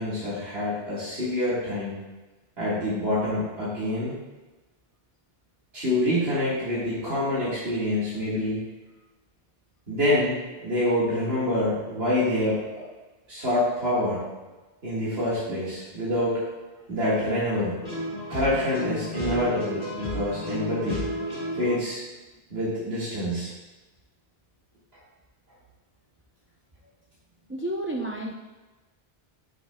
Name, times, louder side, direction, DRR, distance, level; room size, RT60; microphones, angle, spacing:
voice 1, 0.0-1.9 2.6-4.2 5.7-8.6 9.9-12.6 13.3-14.2 14.8-16.4 16.9-17.8 18.3-21.1 21.6-22.0 22.5-23.5, left 1 dB, 75° right, -9 dB, 2.0 m, -26 dB
sound 1, 17.8-21.8, left 1 dB, 65° left, 2.1 m, -33 dB
voice 2, 27.5-28.3, right 1 dB, 20° right, 0 dB, 0.4 m, -30 dB
8.8 x 6.9 x 2.2 m, 1.2 s
omnidirectional pair, 1.0 m